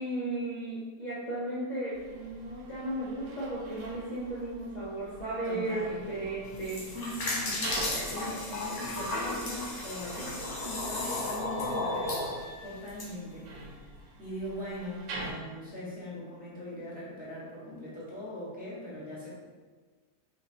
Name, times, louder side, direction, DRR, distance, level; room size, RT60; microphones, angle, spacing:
voice 1, 0.0-6.9 7.8-8.8, right 1 dB, 35° left, -8 dB, 0.9 m, -35 dB
sound 1, 1.9-15.3, right 2 dB, 85° right, 1.3 m, -46 dB
voice 2, 5.4-6.0 6.9-7.7 8.0-13.8 14.2-19.4, left 1 dB, 5° right, -7 dB, 1.2 m, -41 dB
sound 2, 6.5-13.1, left 2 dB, 50° left, 1.2 m, -34 dB
sound 3, 9.6-13.6, equal, 45° right, 0.7 m, -51 dB
5.8 x 3.0 x 2.8 m, 1.4 s
omnidirectional pair, 1.8 m